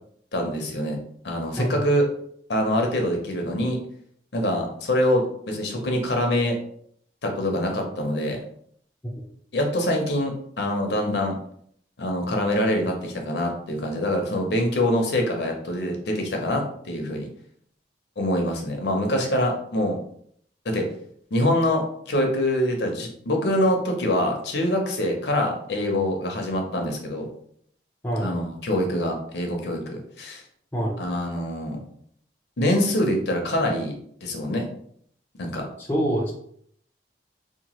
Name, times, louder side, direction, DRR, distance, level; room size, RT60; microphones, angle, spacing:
voice 1, 0.3-1.0 1.2-2.1 2.5-3.8 4.3-6.6 7.2-8.4 9.5-11.4 12.0-17.3 18.2-20.0 20.6-20.9 21.3-27.3 28.2-30.4 31.0-31.8 32.6-33.9 34.2-34.7 35.4-35.7, left 1 dB, 70° left, 2 dB, 0.6 m, -25 dB
voice 2, 30.7-31.1 35.8-36.3, right 1 dB, 10° left, -2 dB, 0.4 m, -26 dB
2.8 x 2.2 x 2.9 m, 0.65 s
head